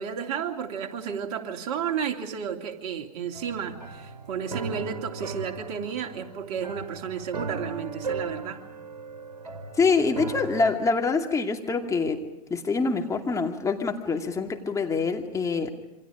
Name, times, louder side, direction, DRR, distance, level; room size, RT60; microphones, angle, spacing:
voice 1, 0.0-8.6, right 7 dB, 50° right, 3 dB, 3.0 m, -32 dB
sound 1, 3.3-10.7, right 4 dB, 85° right, 1.8 m, -37 dB
voice 2, 9.8-12.2 12.5-15.7, left 4 dB, 15° left, 3 dB, 2.6 m, -25 dB
28.0 x 25.5 x 5.1 m, 0.93 s
hypercardioid pair, 105°, 20 cm